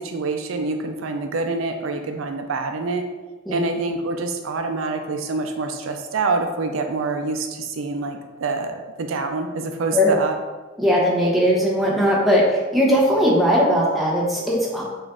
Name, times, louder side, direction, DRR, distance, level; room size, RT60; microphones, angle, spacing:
voice 1, 0.0-3.0 3.5-10.4, right 3 dB, 75° right, 5 dB, 0.4 m, -26 dB
voice 2, 10.8-12.4 12.7-14.8, equal, ahead, -4 dB, 0.8 m, -18 dB
5.0 x 2.5 x 3.6 m, 1.2 s
head